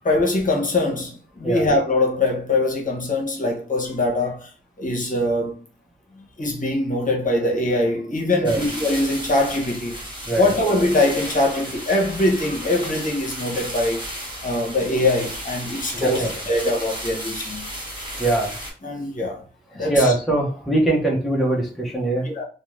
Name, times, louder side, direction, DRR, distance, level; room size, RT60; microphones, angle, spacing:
voice 1, 0.0-4.5 4.8-5.6 6.1-10.0 10.4-14.0 14.4-17.7 18.8-19.4 19.7-20.1 22.2-22.4, left 2 dB, 50° left, 0.8 m, -22 dB
sound 1, 8.4-18.7, equal, 25° right, 1.1 m, -34 dB
voice 2, 16.0-16.3 18.2-18.5 19.7-22.3, right 2 dB, ahead, 0.6 m, -21 dB
2.5 x 2.1 x 3.1 m
wide cardioid pair, 110°, 18 cm